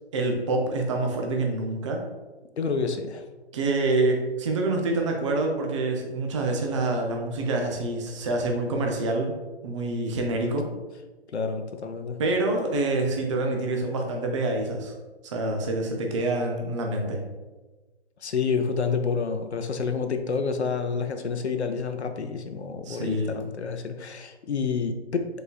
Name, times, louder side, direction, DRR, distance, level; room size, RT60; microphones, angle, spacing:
voice 1, 0.1-2.0 3.5-9.3 9.6-10.6 12.2-14.9 15.2-17.2 22.8-23.4, right 2 dB, 30° right, 2 dB, 0.5 m, -26 dB
voice 2, 2.6-3.2 11.3-12.2 18.2-25.3, left 5 dB, 80° left, 7 dB, 0.6 m, -28 dB
4.8 x 4.0 x 2.2 m, 1.2 s
figure-of-eight pair, 135°, 33 cm